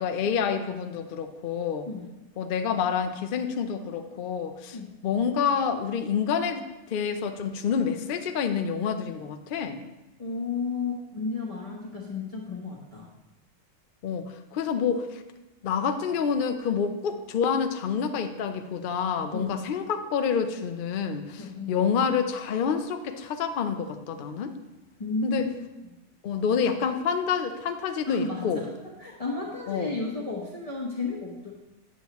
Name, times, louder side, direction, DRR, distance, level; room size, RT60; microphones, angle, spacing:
voice 1, 0.0-1.9 2.4-4.8 5.0-9.8 14.0-15.2 15.6-24.6 25.2-25.4 26.2-28.6 29.7-29.9, left 6 dB, 65° left, 7 dB, 0.5 m, -28 dB
voice 2, 10.2-13.1 19.3-19.5 21.4-21.8 25.0-25.5 28.1-31.5, left 3 dB, 25° left, -5 dB, 1.0 m, -33 dB
9.5 x 7.1 x 3.0 m, 1.0 s
omnidirectional pair, 1.6 m